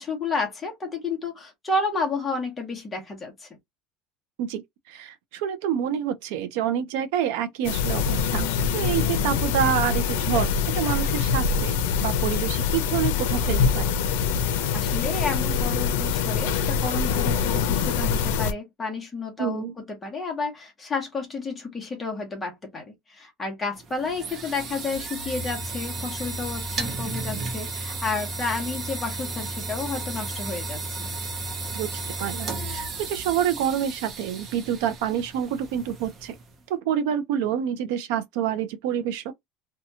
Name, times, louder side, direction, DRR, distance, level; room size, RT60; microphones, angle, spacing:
voice 1, 0.0-3.5 14.7-31.1, left 3 dB, 10° left, 0.8 m, -31 dB
voice 2, 4.4-8.5 8.7-14.0 19.4-19.7 31.7-36.4 36.7-39.3, right 9 dB, 65° right, 0.5 m, -27 dB
sound 1, 7.6-18.5, left 6 dB, 85° left, 0.5 m, -24 dB
sound 2, 23.7-36.5, right 3 dB, 25° right, 0.6 m, -34 dB
2.7 x 2.2 x 2.7 m
cardioid pair, 180°, 0 cm